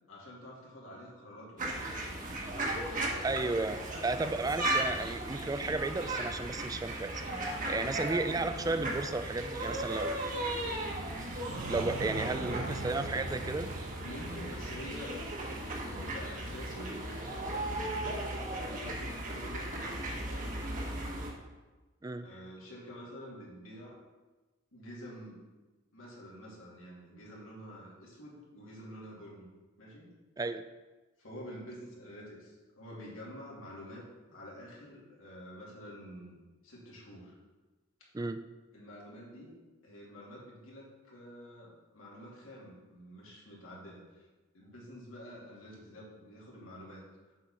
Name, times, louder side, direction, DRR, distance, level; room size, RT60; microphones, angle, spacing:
voice 1, 0.1-2.4 7.6-7.9 12.0-12.7 14.0-15.1 15.7-18.3 18.6-21.2 22.2-24.0 24.7-25.4 25.9-29.5 29.8-30.1 31.2-34.0 34.3-36.4 36.6-37.4 38.7-39.5 39.8-44.3 44.5-47.0, equal, 80° left, -5 dB, 2.6 m, -48 dB
sound 1, 1.6-21.3, right 1 dB, 40° right, 1.3 m, -36 dB
voice 2, 3.2-7.2 7.6-10.3 11.7-13.7 22.0-22.3 30.4-30.6 38.1-38.4, right 3 dB, 20° right, 11 dB, 0.3 m, -33 dB
sound 2, 10.7-16.5, right 3 dB, 75° right, 0.6 m, -43 dB
7.7 x 4.7 x 5.6 m, 1.2 s
head